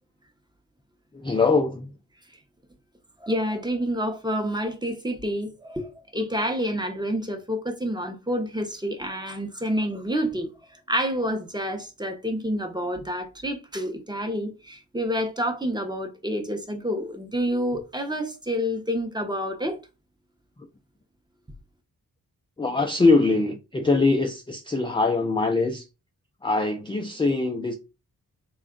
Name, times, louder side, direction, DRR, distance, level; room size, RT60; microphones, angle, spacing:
voice 1, 1.1-1.9 22.6-25.9 26.4-27.7, left 3 dB, 15° left, 0.4 m, -22 dB
voice 2, 3.2-10.5 10.9-19.8, equal, 10° right, 0.7 m, -28 dB
3.6 x 2.3 x 3.7 m
wide cardioid pair, 95°, 35 cm